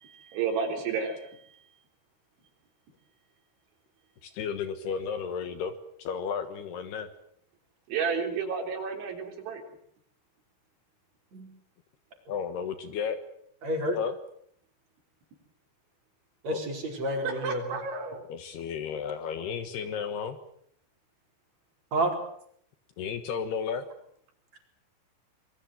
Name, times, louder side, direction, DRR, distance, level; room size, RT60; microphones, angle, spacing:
voice 1, 0.0-1.2 7.9-9.6 17.2-18.2, right 5 dB, 70° right, 4 dB, 5.9 m, -31 dB
voice 2, 4.2-5.7 6.0-7.1 12.3-13.2 13.9-14.1 16.5-16.6 18.3-20.4 23.0-23.8, left 7 dB, 65° left, 10 dB, 3.0 m, -33 dB
voice 3, 13.6-14.0 16.4-17.8 21.9-22.1 24.5-24.6, right 1 dB, 35° right, 3 dB, 5.2 m, -29 dB
25.5 x 22.0 x 7.8 m, 0.66 s
omnidirectional pair, 5.6 m